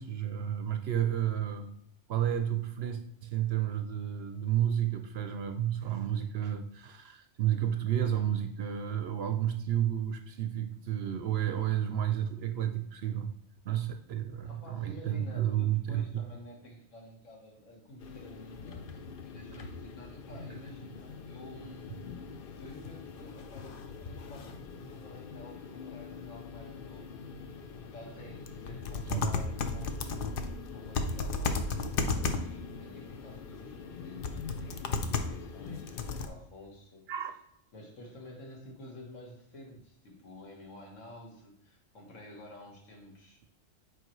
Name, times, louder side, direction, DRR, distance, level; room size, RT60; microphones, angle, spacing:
voice 1, 0.0-1.7 2.1-13.3 13.6-16.2 20.5-20.6 29.1-29.3 37.1-37.3, right 10 dB, 65° right, 7 dB, 0.7 m, -31 dB
voice 2, 14.4-22.0 22.6-27.3 27.9-37.1 37.7-43.4, left 1 dB, 75° left, 0 dB, 1.8 m, -50 dB
sound 1, 18.0-36.3, left 4 dB, 55° left, 0.7 m, -37 dB
7.8 x 4.7 x 3.1 m, 0.74 s
omnidirectional pair, 1.3 m